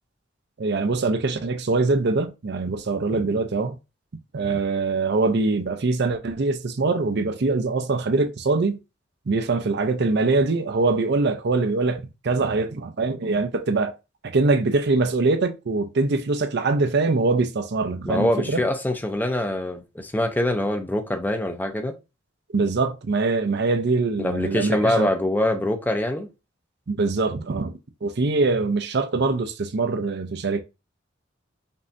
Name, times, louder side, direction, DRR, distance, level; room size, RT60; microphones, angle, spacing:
voice 1, 0.6-3.8 4.3-8.8 9.3-13.9 14.3-18.6 22.5-25.1 26.9-27.7 28.0-30.6, right 3 dB, 55° right, 0.5 m, -23 dB
voice 2, 18.1-21.9 24.2-26.3, left 1 dB, 10° left, 0.5 m, -24 dB
5.3 x 2.7 x 2.6 m
head